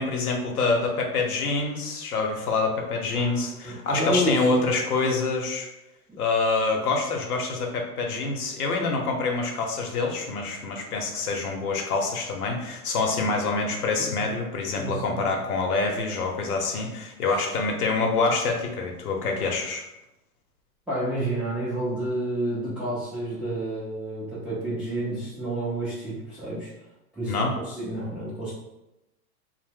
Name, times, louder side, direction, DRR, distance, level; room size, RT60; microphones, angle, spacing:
voice 1, 0.0-5.7 6.2-19.8 27.3-27.5, left 3 dB, 70° left, 2 dB, 0.8 m, -26 dB
voice 2, 3.1-4.5 14.0-14.2 14.7-15.4 20.9-26.7 27.1-28.5, right 1 dB, 5° right, -11 dB, 0.4 m, -30 dB
2.6 x 2.1 x 3.5 m, 0.92 s
hypercardioid pair, 120°, 46 cm